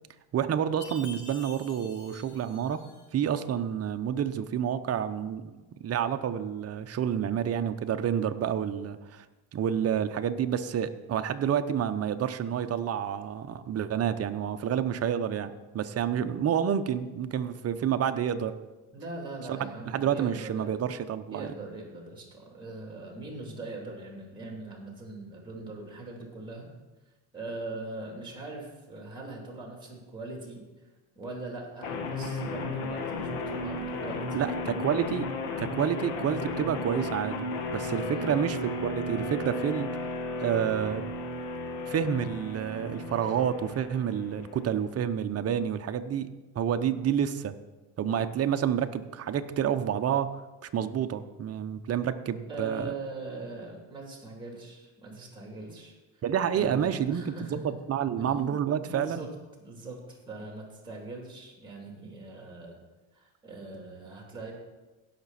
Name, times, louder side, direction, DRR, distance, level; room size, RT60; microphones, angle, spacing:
voice 1, 0.3-2.8 3.1-5.5 5.8-9.3 9.5-18.5 19.5-19.6 19.8-21.5 34.3-35.3 35.6-39.9 40.4-41.0 41.8-46.3 46.5-47.5 48.0-50.4 50.7-52.9 56.2-59.3, right 9 dB, 35° right, 9 dB, 0.7 m, -29 dB
Chime, 0.8-3.3, left 3 dB, 60° left, 2.7 m, -48 dB
voice 2, 18.9-20.9 21.3-26.7 27.3-30.9 31.1-34.9 38.1-38.3 52.5-56.2 56.5-57.8 58.2-58.5 58.8-59.3 59.6-62.8 63.1-64.5, right 2 dB, 10° right, 0 dB, 3.2 m, -41 dB
sound 1, 31.8-44.8, left 2 dB, 90° left, 1.5 m, -34 dB
16.5 x 6.0 x 4.2 m, 1.2 s
supercardioid pair, 95°, 45 cm